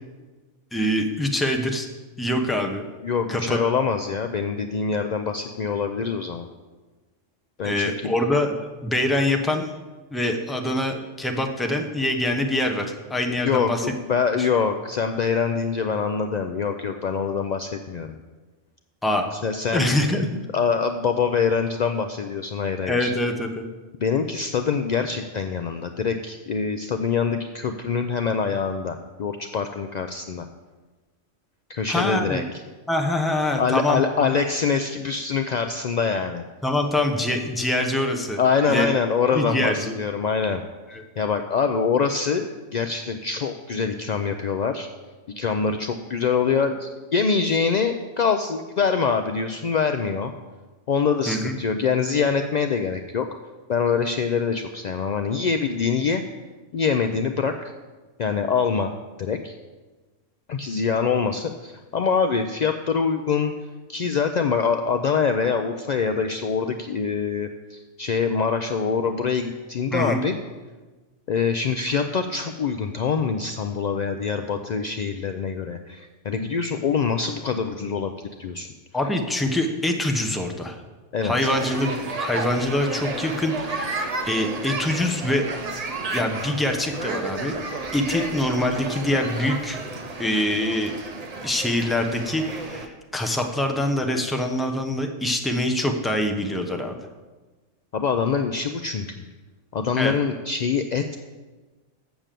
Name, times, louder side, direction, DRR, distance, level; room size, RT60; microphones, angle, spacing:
voice 1, 0.7-1.9 2.2-2.8 3.3-3.6 7.6-8.5 8.8-9.7 10.1-13.9 14.4-14.5 19.0-19.3 19.7-20.3 22.9-23.7 31.9-32.4 32.9-34.3 36.6-38.4 38.7-38.9 39.3-39.9 40.9-41.0 51.3-51.6 69.9-70.2 78.9-80.8 81.2-85.5 86.1-87.5 87.9-89.8 90.2-90.9 91.4-97.0 100.0-100.1, left 1 dB, ahead, 4 dB, 0.6 m, -24 dB
voice 2, 3.0-6.5 7.6-8.1 13.4-18.2 19.4-19.9 20.3-23.1 24.0-30.5 31.7-32.4 33.6-36.4 38.4-40.6 41.2-44.9 45.3-50.3 50.9-53.3 53.7-56.2 56.7-57.7 58.2-58.9 59.2-59.5 60.5-63.5 63.9-70.3 71.3-78.1 78.4-78.7 81.1-81.5 97.9-99.2 99.7-101.2, left 5 dB, 75° left, 6 dB, 0.4 m, -24 dB
sound 1, 81.3-92.9, right 3 dB, 35° right, 0.7 m, -32 dB
7.0 x 6.6 x 7.5 m, 1.3 s
omnidirectional pair, 1.3 m